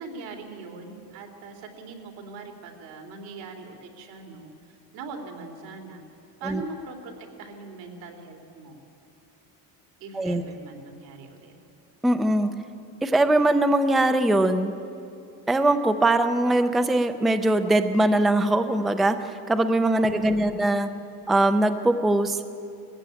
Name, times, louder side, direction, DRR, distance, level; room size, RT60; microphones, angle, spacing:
voice 1, 0.0-6.0 6.4-8.8 10.0-11.5 20.1-20.6, right 3 dB, 85° right, 3 dB, 3.1 m, -41 dB
voice 2, 12.0-12.5 13.0-14.7 15.5-20.9 21.3-22.4, right 1 dB, ahead, 9 dB, 0.4 m, -21 dB
20.5 x 15.0 x 9.0 m, 2.7 s
cardioid pair, 175°, 36 cm